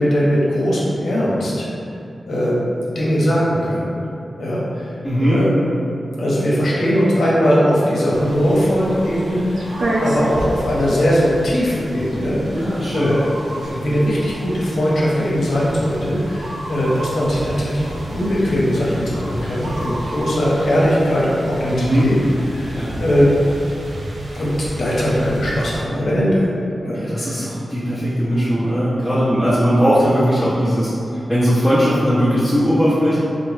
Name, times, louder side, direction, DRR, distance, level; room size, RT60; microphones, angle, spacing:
voice 1, 0.0-1.7 2.3-2.6 2.9-3.9 4.4-4.9 5.2-5.5 6.2-12.6 12.9-13.2 13.8-22.2 22.5-23.3 24.3-24.5 24.8-26.5 26.8-27.3, equal, 85° left, -6 dB, 0.7 m, -19 dB
voice 2, 5.0-5.4 12.5-13.1 13.7-13.8 21.7-22.1 22.7-22.9 26.9-30.9 31.3-33.2, equal, ahead, -13 dB, 0.7 m, -18 dB
sound 1, 8.1-25.8, right 1 dB, 80° right, 0.4 m, -30 dB
3.7 x 2.1 x 3.3 m, 2.7 s
wide cardioid pair, 95°, 0 cm